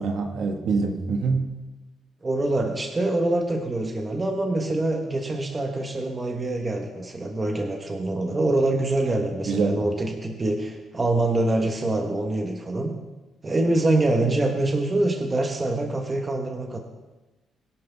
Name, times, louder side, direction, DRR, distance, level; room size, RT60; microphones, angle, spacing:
voice 1, 0.0-1.6 9.5-9.8, right 4 dB, 55° right, 4 dB, 1.6 m, -25 dB
voice 2, 2.2-12.9 13.4-16.8, right 2 dB, 15° right, 2 dB, 1.2 m, -25 dB
21.0 x 11.5 x 3.5 m, 1.1 s
cardioid pair, 175°, 0 cm